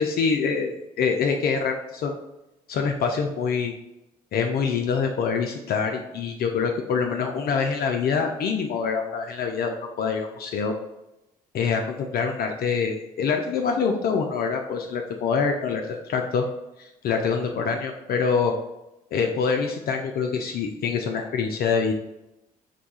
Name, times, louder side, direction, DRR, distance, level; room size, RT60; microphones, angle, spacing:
voice 1, 0.0-2.1 2.7-3.7 4.3-10.7 11.5-16.4 16.8-18.5 19.1-21.9, left 5 dB, 55° left, 3 dB, 0.4 m, -25 dB
2.8 x 2.3 x 4.0 m, 0.92 s
hypercardioid pair, 45°, 19 cm